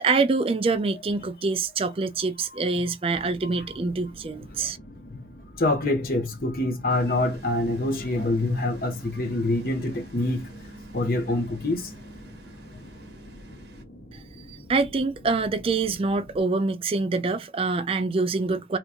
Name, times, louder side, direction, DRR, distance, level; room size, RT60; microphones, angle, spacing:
voice 1, 0.0-4.8 14.1-14.2 14.5-18.8, right 3 dB, 30° right, 0.3 m, -25 dB
sound 1, 3.1-16.4, equal, 65° left, 1.5 m, -47 dB
voice 2, 5.6-10.5 10.9-11.9, left 2 dB, 50° left, 0.8 m, -26 dB
sound 2, 6.9-13.8, right 2 dB, 70° right, 0.9 m, -47 dB
2.8 x 2.5 x 3.4 m
head